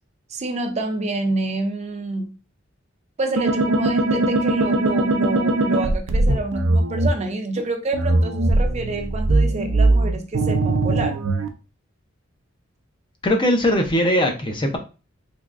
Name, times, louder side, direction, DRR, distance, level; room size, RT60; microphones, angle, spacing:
voice 1, 0.3-2.3 3.2-11.2, right 2 dB, 35° right, 5 dB, 0.4 m, -27 dB
sound 1, 3.4-7.1 7.9-11.5, right 2 dB, 90° right, 0.5 m, -20 dB
voice 2, 13.2-14.8, left 1 dB, 25° left, 4 dB, 0.5 m, -20 dB
3.5 x 3.1 x 2.4 m, 0.32 s
head